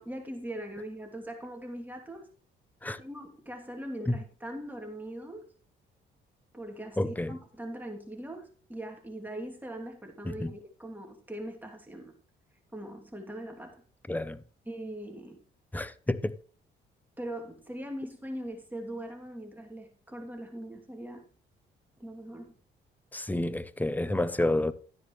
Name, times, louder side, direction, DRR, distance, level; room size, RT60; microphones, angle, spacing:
voice 1, 0.0-2.3 3.0-5.5 6.5-12.1 12.7-13.8 14.7-15.4 17.2-21.3 22.0-22.5, right 1 dB, 10° right, 2.7 m, -41 dB
voice 2, 7.0-7.4 10.2-10.5 14.1-14.4 15.7-16.4 23.1-24.7, left 1 dB, 10° left, 0.7 m, -29 dB
12.5 x 10.0 x 3.2 m
cardioid pair, 90°, 20 cm